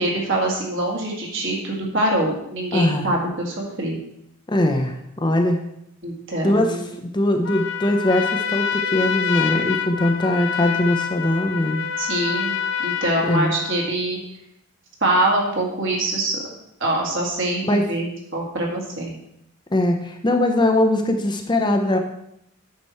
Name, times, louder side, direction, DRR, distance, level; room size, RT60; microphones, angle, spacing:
voice 1, 0.0-4.0 6.0-6.9 12.0-14.2 15.0-16.5 16.8-18.1 18.3-19.1, right 1 dB, 60° right, -1 dB, 2.1 m, -24 dB
voice 2, 2.7-3.1 4.5-5.6 6.4-11.8 13.2-13.5 17.6-17.8 19.7-22.0, left 1 dB, 20° left, 4 dB, 0.6 m, -21 dB
Trumpet, 7.4-13.9, left 7 dB, 55° left, 0.5 m, -26 dB
8.5 x 6.1 x 4.3 m, 0.79 s
head